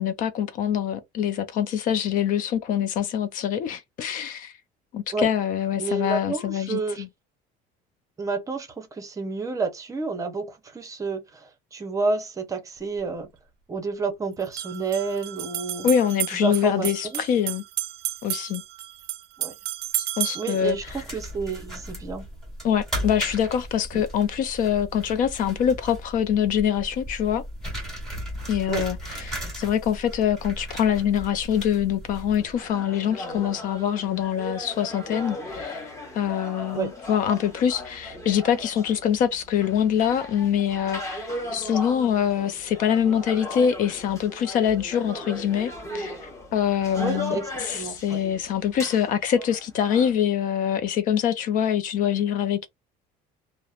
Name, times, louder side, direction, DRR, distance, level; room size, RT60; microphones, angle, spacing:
voice 1, 0.0-4.5 4.9-7.1 15.8-17.6 18.2-18.6 20.0-20.8 22.6-27.4 28.5-52.7, left 9 dB, 55° left, 0.4 m, -24 dB
voice 2, 5.8-7.0 8.2-13.3 13.7-15.9 16.3-17.2 19.4-19.5 20.3-20.8 21.1-22.2 23.9-24.0 28.7-28.8 36.7-36.9 47.0-48.2, right 4 dB, 20° right, 0.6 m, -30 dB
sound 1, 12.8-12.9 14.4-20.7, right 14 dB, 70° right, 0.4 m, -32 dB
sound 2, 20.6-32.6, equal, ahead, 1.3 m, -36 dB
sound 3, 32.4-50.1, left 1 dB, 20° left, 1.0 m, -37 dB
2.8 x 2.0 x 2.4 m
cardioid pair, 130°, 17 cm